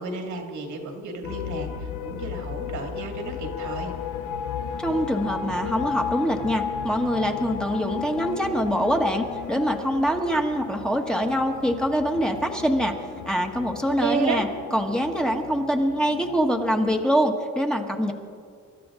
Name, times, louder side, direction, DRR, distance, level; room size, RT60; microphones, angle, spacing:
voice 1, 0.0-3.9 13.8-14.4, right 4 dB, 75° right, 3 dB, 2.4 m, -31 dB
sound 1, 1.2-17.1, left 8 dB, 85° left, 0.8 m, -34 dB
voice 2, 4.8-13.0 13.3-18.1, equal, 5° left, 2 dB, 1.4 m, -24 dB
24.0 x 12.5 x 3.8 m, 2.2 s
cardioid pair, 90°, 30 cm